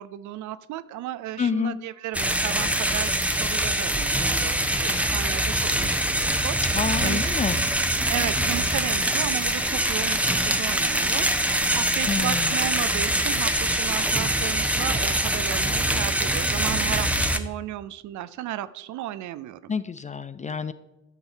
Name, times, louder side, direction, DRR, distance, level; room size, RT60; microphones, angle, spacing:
voice 1, 0.0-5.5 5.8-6.6 7.0-7.3 8.1-19.7, right 13 dB, 50° right, 16 dB, 0.6 m, -34 dB
voice 2, 1.4-1.7 6.7-7.6 12.0-12.5 19.7-20.7, left 6 dB, 20° left, 13 dB, 0.4 m, -28 dB
sound 1, 2.1-17.4, right 1 dB, 5° right, 0.8 m, -24 dB
12.0 x 7.1 x 4.0 m, 1.0 s
figure-of-eight pair, 45°, 38 cm